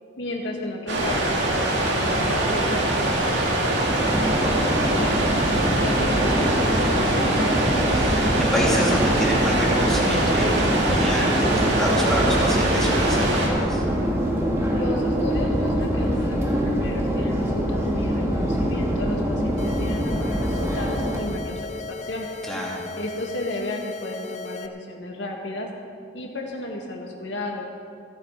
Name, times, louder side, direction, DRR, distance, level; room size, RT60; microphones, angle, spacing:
voice 1, 0.2-5.3 5.8-7.6 14.7-22.3 23.0-25.7 26.1-27.7, left 1 dB, 85° left, 0 dB, 2.1 m, -34 dB
sound 1, 0.9-13.5, right 1 dB, 75° right, 2.3 m, -23 dB
Subway metro underground, 3.9-21.2, equal, 15° right, 1.7 m, -24 dB
voice 2, 7.9-13.8 22.5-22.8, equal, 5° left, -5 dB, 2.7 m, -27 dB
sound 2, 19.6-24.7, left 3 dB, 40° left, 0.6 m, -36 dB
26.0 x 8.7 x 4.2 m, 2.3 s
head